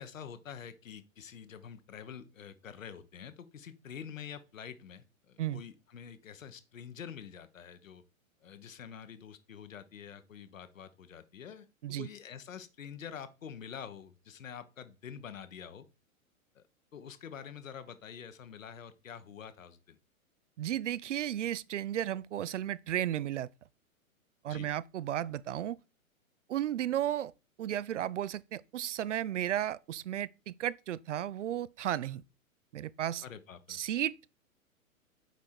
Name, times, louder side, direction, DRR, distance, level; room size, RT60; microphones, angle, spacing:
voice 1, 0.0-8.0 8.4-11.7 12.0-15.9 16.5-16.6 16.9-20.0 24.5-24.7 33.2-33.8, left 8 dB, 65° left, 1.2 m, -47 dB
voice 2, 20.6-23.5 24.4-25.8 26.5-27.3 27.6-32.2 32.7-33.2 33.7-34.2, right 11 dB, 60° right, 0.5 m, -34 dB
8.1 x 4.9 x 4.4 m
figure-of-eight pair, 110°, 42 cm